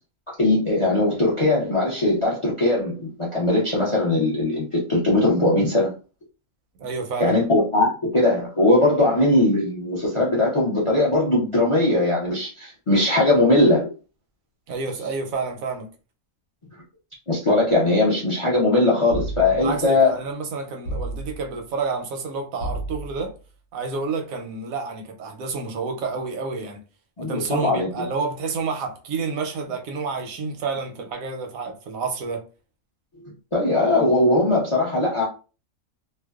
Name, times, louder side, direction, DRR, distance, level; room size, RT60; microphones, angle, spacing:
voice 1, 0.4-5.9 7.2-13.9 17.3-20.1 27.2-27.9 33.5-35.2, left 2 dB, 50° left, 0.4 m, -20 dB
voice 2, 6.8-7.4 14.7-15.9 19.5-23.3 23.7-26.8 27.2-32.4, right 4 dB, 85° right, 1.0 m, -29 dB
sound 1, 19.1-19.9 20.8-21.6 22.6-23.4, right 1 dB, 80° left, 1.0 m, -32 dB
2.5 x 2.1 x 2.3 m
omnidirectional pair, 1.4 m